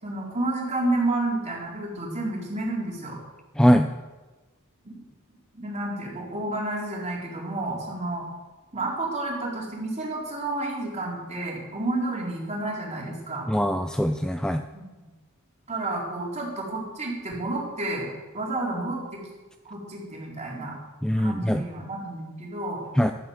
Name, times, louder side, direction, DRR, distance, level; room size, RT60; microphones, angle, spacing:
voice 1, 0.0-3.2 4.8-5.0 5.5-8.2 8.7-13.5 14.7-14.8 15.7-19.2 19.6-20.8 21.2-22.8, right 2 dB, 30° right, -3 dB, 4.0 m, -30 dB
voice 2, 3.6-3.9 13.5-14.6 21.0-21.6 23.0-23.1, equal, 5° left, 7 dB, 0.4 m, -21 dB
12.0 x 9.6 x 8.0 m, 1.2 s
head